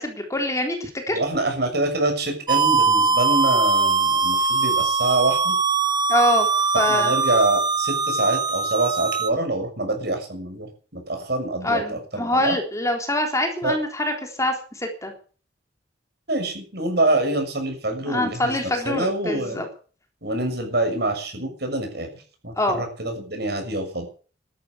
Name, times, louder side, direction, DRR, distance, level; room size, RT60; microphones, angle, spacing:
voice 1, 0.0-1.2 6.1-6.5 6.8-7.1 11.6-15.1 18.1-19.7 22.6-22.8, left 1 dB, 15° left, 4 dB, 3.6 m, -24 dB
voice 2, 1.1-5.5 6.9-12.6 13.6-13.8 16.3-18.6 18.8-19.6 20.2-22.1 22.4-24.1, right 2 dB, 60° right, 4 dB, 6.6 m, -25 dB
sound 1, 2.5-9.3, right 4 dB, 25° right, 1.1 m, -21 dB
13.0 x 11.5 x 8.4 m, 0.40 s
head